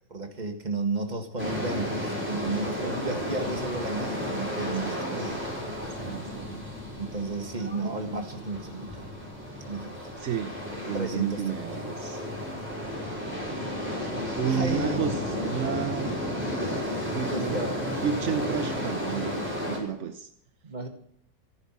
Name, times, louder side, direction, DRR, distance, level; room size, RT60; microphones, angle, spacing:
voice 1, 0.1-5.3 7.0-9.1 9.7-9.9 10.9-12.2 14.5-15.0 17.3-18.0 20.6-20.9, right 3 dB, 20° right, 4 dB, 1.8 m, -33 dB
sound 1, 1.4-19.8, left 1 dB, 5° right, 5.2 m, -33 dB
voice 2, 4.7-5.5 5.8-6.6 10.2-10.6 10.9-12.2 12.8-13.0 14.4-16.8 17.1-17.6 18.0-20.3, right 7 dB, 65° right, 9 dB, 0.7 m, -32 dB
15.0 x 10.0 x 7.4 m, 0.71 s
omnidirectional pair, 2.2 m